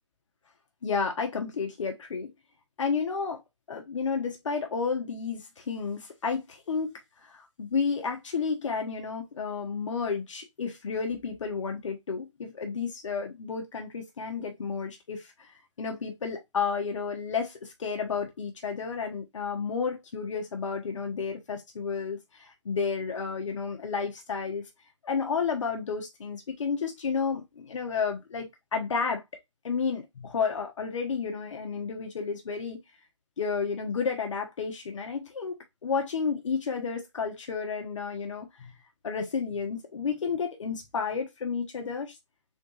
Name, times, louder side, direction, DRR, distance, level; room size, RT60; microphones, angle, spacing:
voice 1, 0.8-2.3 2.8-3.4 3.7-6.9 7.2-15.5 15.8-24.7 25.0-29.2 29.6-32.8 33.4-38.7 39.0-42.2, left 5 dB, 70° left, 1.0 m, -31 dB
3.6 x 2.6 x 3.9 m
hypercardioid pair, 145°, 16 cm